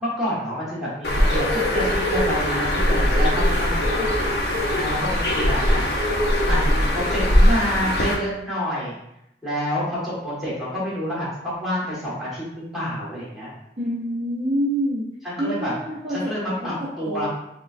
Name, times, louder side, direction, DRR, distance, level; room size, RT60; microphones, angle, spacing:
voice 1, 0.0-4.1 4.5-5.9 6.5-9.0 9.4-13.5 15.2-15.7 16.1-17.3, equal, ahead, -9 dB, 1.4 m, -28 dB
Bird, 1.0-8.2, left 1 dB, 65° left, 0.6 m, -21 dB
voice 2, 13.8-15.1 15.4-17.3, right 1 dB, 35° right, -8 dB, 0.7 m, -27 dB
5.5 x 2.3 x 2.5 m, 0.83 s
head